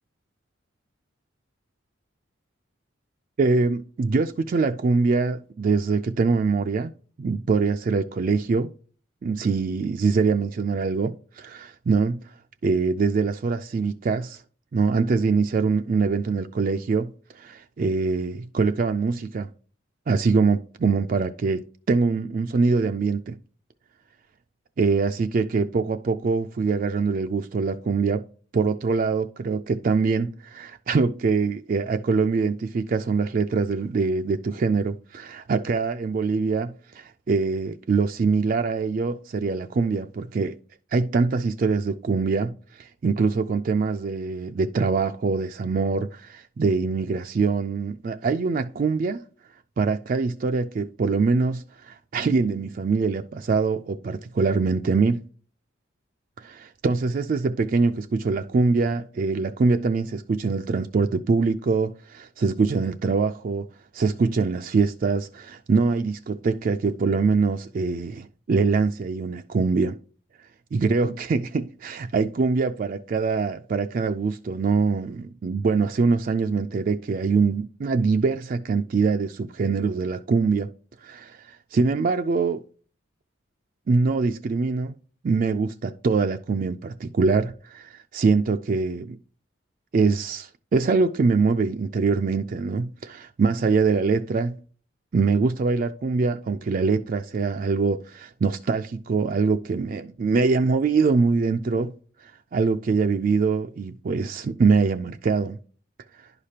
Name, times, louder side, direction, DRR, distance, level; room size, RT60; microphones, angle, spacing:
voice 1, 3.4-6.9 7.2-8.7 9.2-12.2 12.6-14.4 14.7-19.5 20.1-23.3 24.8-28.2 28.5-40.6 40.9-49.2 49.8-55.2 56.4-63.7 63.9-70.0 70.7-80.7 81.0-82.6 83.9-84.9 85.2-89.2 89.9-94.6 95.1-101.9 102.2-105.6, right 4 dB, 40° right, 0.3 m, -23 dB
11.0 x 4.9 x 2.8 m
head